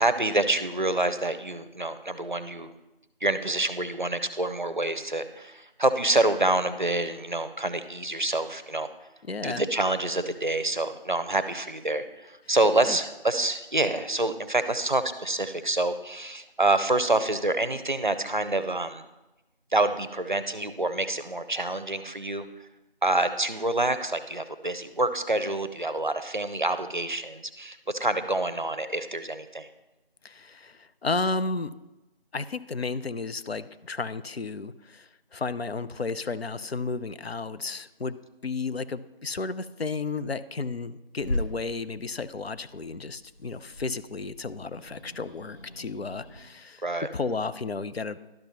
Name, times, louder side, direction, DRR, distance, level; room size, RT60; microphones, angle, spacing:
voice 1, 0.0-2.7 3.2-8.9 9.4-19.1 19.7-22.5 23.0-29.7 46.8-47.1, right 2 dB, 50° right, 11 dB, 0.6 m, -27 dB
voice 2, 9.3-9.6 12.9-13.0 30.2-31.7 32.3-38.2 38.4-46.8 47.1-48.2, left 4 dB, 85° left, 13 dB, 0.6 m, -33 dB
Growling / Hiss, 41.2-46.4, left 1 dB, 55° left, 2.3 m, -38 dB
12.0 x 5.4 x 3.0 m, 1.0 s
figure-of-eight pair, 180°, 30 cm